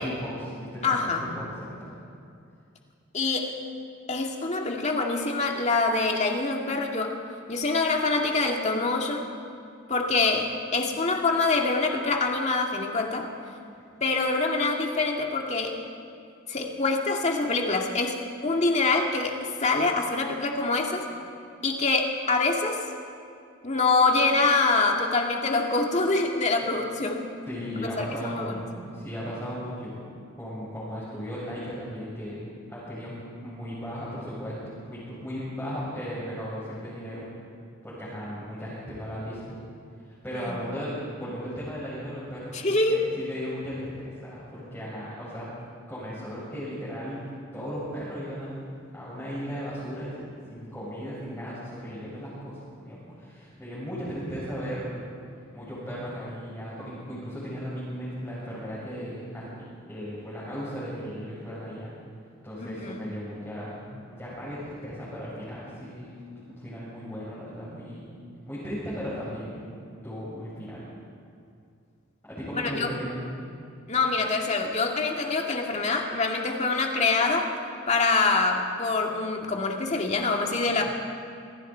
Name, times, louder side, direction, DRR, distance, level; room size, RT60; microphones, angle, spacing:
voice 1, 0.0-1.9 27.5-30.0 30.4-32.4 32.7-33.1 33.4-34.6 34.9-37.2 37.8-39.6 40.0-45.5 45.9-48.6 48.9-52.6 52.8-55.0 55.5-59.5 59.9-61.9 62.4-68.1 68.5-69.8 70.0-70.8 72.2-73.2, equal, 10° left, -9 dB, 7.0 m, -36 dB
voice 2, 0.8-1.2 3.1-3.5 4.1-7.2 7.5-9.3 9.9-13.3 14.0-15.8 16.5-21.0 21.6-22.8 23.6-27.3 28.0-28.7 40.3-40.6 42.5-43.0 62.6-63.0 72.5-72.9 73.9-77.5 77.9-80.9, left 3 dB, 35° left, 1 dB, 2.2 m, -25 dB
27.0 x 23.0 x 4.6 m, 2.4 s
head